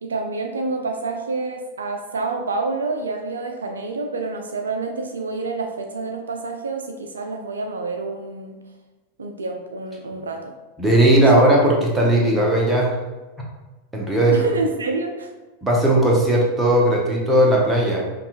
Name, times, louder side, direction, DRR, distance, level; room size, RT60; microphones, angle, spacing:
voice 1, 0.0-8.6 9.2-10.5 14.3-15.3, right 3 dB, 70° right, 4 dB, 0.3 m, -28 dB
voice 2, 10.8-12.9 13.9-14.5 15.6-18.0, right 1 dB, 5° right, -3 dB, 0.9 m, -17 dB
5.4 x 2.3 x 2.5 m, 1.2 s
figure-of-eight pair, 90°, 0 cm